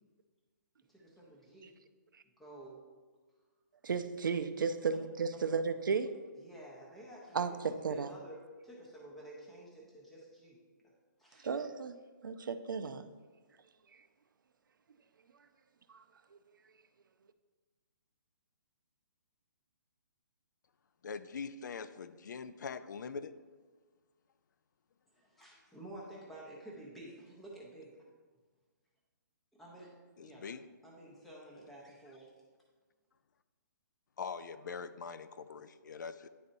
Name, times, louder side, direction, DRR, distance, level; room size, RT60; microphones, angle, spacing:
voice 1, 0.9-1.7 2.4-2.8 6.3-7.5 7.9-10.6 11.2-11.6 25.1-28.1 29.6-29.9 30.2-30.4 30.8-32.3, right 1 dB, ahead, -5 dB, 0.5 m, -51 dB
voice 2, 3.8-6.2 7.3-8.1 11.4-12.0 12.2-13.1 15.9-16.0, right 5 dB, 80° right, 10 dB, 0.5 m, -34 dB
voice 3, 21.0-23.3 30.2-30.7 34.2-36.3, left 5 dB, 65° left, 13 dB, 0.4 m, -43 dB
9.8 x 4.1 x 2.6 m, 1.4 s
hypercardioid pair, 175°, 11 cm